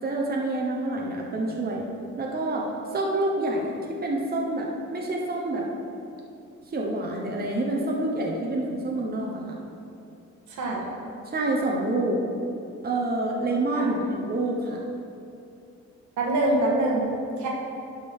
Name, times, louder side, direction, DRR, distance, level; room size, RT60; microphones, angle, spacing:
voice 1, 0.0-1.9 2.2-5.7 6.7-9.6 11.3-12.2 12.8-14.9, right 2 dB, 30° right, -1 dB, 1.0 m, -27 dB
voice 2, 10.5-10.8 13.7-14.0 16.2-17.1 17.4-17.5, right 2 dB, 75° right, -2 dB, 1.7 m, -24 dB
11.0 x 5.2 x 3.7 m, 2.6 s
cardioid pair, 90°, 30 cm